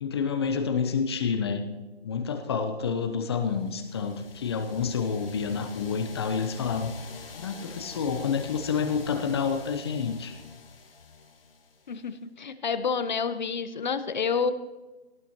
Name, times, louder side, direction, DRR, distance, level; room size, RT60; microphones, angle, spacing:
voice 1, 0.0-1.7 2.0-6.9 7.3-10.4, left 6 dB, 25° left, 7 dB, 0.9 m, -28 dB
sound 1, 3.4-12.1, left 5 dB, 60° left, 2.0 m, -46 dB
voice 2, 11.9-14.5, left 5 dB, 45° left, 11 dB, 1.2 m, -29 dB
18.5 x 16.0 x 3.0 m, 1.1 s
figure-of-eight pair, 150°, 32 cm